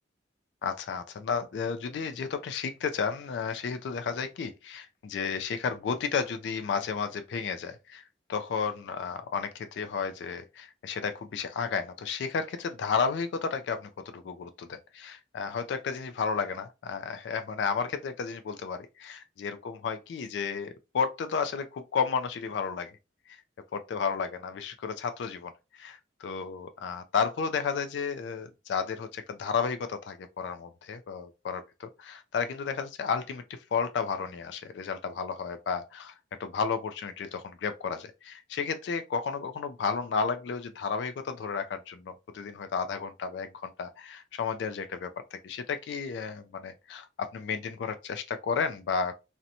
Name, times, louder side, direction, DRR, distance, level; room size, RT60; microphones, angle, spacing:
voice 1, 0.6-8.0 8.3-20.7 20.9-22.9 23.7-36.1 36.4-49.2, left 6 dB, 75° left, 0.3 m, -32 dB
2.6 x 2.1 x 2.7 m
head